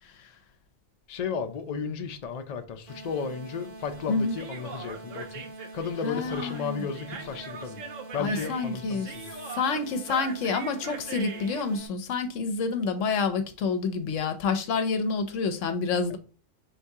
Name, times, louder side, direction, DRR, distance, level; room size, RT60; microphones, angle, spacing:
voice 1, 1.1-5.5 5.7-7.8 8.1-9.4 16.1-16.2, left 6 dB, 55° left, 0.4 m, -34 dB
sound 1, 2.9-11.9, right 2 dB, 50° right, 0.9 m, -45 dB
Human voice, 4.3-11.6, right 5 dB, 75° right, 1.0 m, -41 dB
voice 2, 6.0-6.8 8.2-9.1 9.5-16.2, left 4 dB, 70° left, 1.0 m, -28 dB
3.8 x 2.7 x 4.6 m
omnidirectional pair, 1.4 m